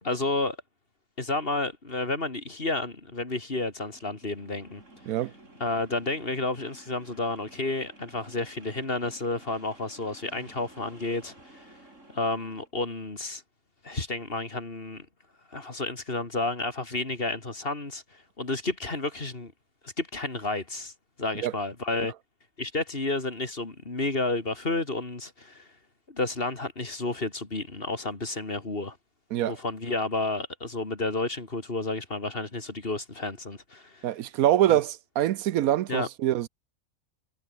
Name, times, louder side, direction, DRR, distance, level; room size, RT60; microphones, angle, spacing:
voice 1, 0.0-0.6 1.2-4.8 5.6-11.7 12.1-13.4 13.8-15.1 15.5-19.5 19.8-20.9 21.2-22.1 22.6-25.7 26.1-29.0 29.5-34.1 34.7-34.8 35.9-36.1, left 2 dB, 40° left, 3.1 m, -31 dB
sound 1, 3.8-12.7, right 2 dB, 55° right, 7.1 m, -53 dB
voice 2, 34.0-36.5, right 12 dB, 75° right, 1.1 m, -24 dB
omnidirectional pair, 1.5 m